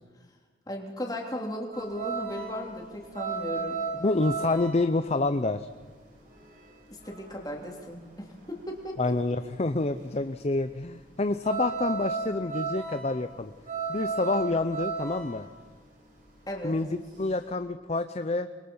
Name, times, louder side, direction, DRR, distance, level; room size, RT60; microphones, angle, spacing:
voice 1, 0.7-3.8 6.9-9.2 16.5-16.7, left 1 dB, 20° left, 0 dB, 3.3 m, -36 dB
sound 1, 1.7-8.9 9.1-17.5, right 4 dB, 50° right, 7.0 m, -35 dB
voice 2, 4.0-5.7 9.0-13.5 13.9-15.5 16.6-18.5, left 2 dB, 35° left, 10 dB, 0.6 m, -28 dB
28.0 x 22.5 x 5.6 m, 1.5 s
head